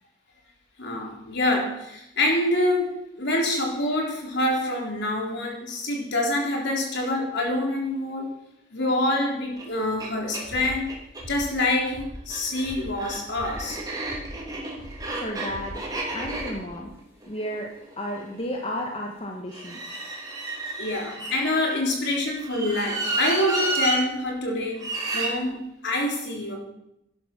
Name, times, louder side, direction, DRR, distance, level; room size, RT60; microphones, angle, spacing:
voice 1, 0.8-8.3 8.7-10.9 11.3-13.8 20.8-26.6, left 1 dB, 60° left, 0 dB, 3.8 m, -26 dB
sound 1, 9.6-9.7 10.0-10.1 10.3-11.2 12.2-18.3 19.5-21.8 22.4-24.0 24.8-25.3, right 2 dB, 20° right, 3.3 m, -31 dB
sound 2, 10.4-16.8, equal, 80° right, 3.6 m, -43 dB
voice 2, 15.2-16.9 17.2-19.8, equal, 30° left, 0 dB, 1.6 m, -33 dB
12.5 x 11.0 x 6.2 m, 0.82 s
head